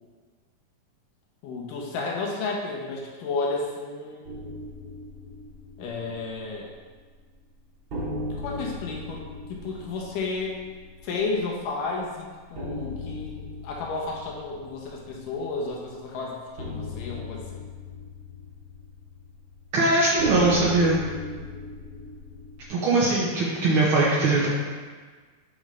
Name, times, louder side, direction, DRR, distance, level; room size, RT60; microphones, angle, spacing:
voice 1, 1.4-4.4 5.8-6.7 8.3-9.2 9.5-10.6 11.0-17.6, left 3 dB, 85° left, -2 dB, 2.6 m, -32 dB
sound 1, 4.2-7.1 7.4-7.5 7.9-22.7, left 1 dB, 50° right, 1.6 m, -38 dB
voice 2, 19.7-21.0 22.7-24.5, right 2 dB, 85° right, -6 dB, 1.1 m, -21 dB
7.0 x 5.1 x 3.2 m, 1.5 s
omnidirectional pair, 3.7 m